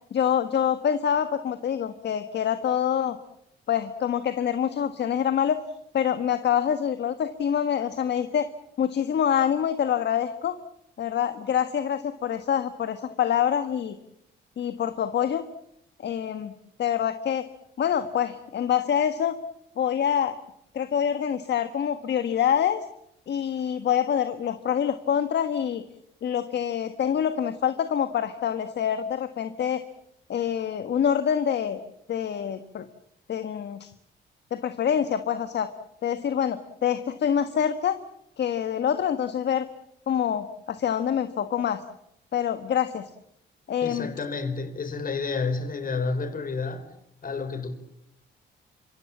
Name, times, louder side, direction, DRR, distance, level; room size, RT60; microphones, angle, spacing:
voice 1, 0.1-3.2 3.7-5.6 5.9-8.5 8.8-10.5 11.0-13.9 14.6-15.4 16.0-16.5 16.8-17.5 17.8-19.4 19.8-20.4 20.7-22.8 23.3-25.8 26.2-29.8 30.3-31.8 32.1-32.8 33.3-33.9 34.5-35.7 36.0-38.0 38.4-39.7 40.1-41.8 42.3-43.1 43.7-44.1, left 8 dB, 60° left, 1.5 m, -26 dB
voice 2, 43.8-46.9 47.2-47.7, left 4 dB, 45° left, 4.3 m, -30 dB
26.5 x 23.5 x 7.3 m
cardioid pair, 90°, 20 cm